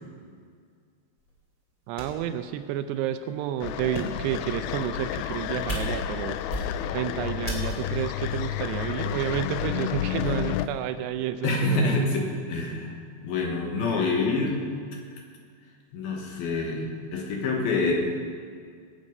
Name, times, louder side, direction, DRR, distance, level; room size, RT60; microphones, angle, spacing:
sound 1, 1.2-1.3 2.0-2.3 3.0-3.1 3.8-4.3 5.0-5.4 5.7-6.2 6.5-7.0 7.5-8.0, equal, 25° left, 2.5 m, -34 dB
voice 1, 1.9-6.6 6.9-11.9, right 11 dB, 85° right, 9 dB, 2.6 m, -30 dB
sound 2, 3.6-10.7, left 12 dB, 85° left, 2.5 m, -31 dB
voice 2, 10.2-10.5 11.4-14.7 15.9-17.9, left 3 dB, 65° left, 0 dB, 3.0 m, -27 dB
18.5 x 8.4 x 5.4 m, 2.1 s
omnidirectional pair, 5.0 m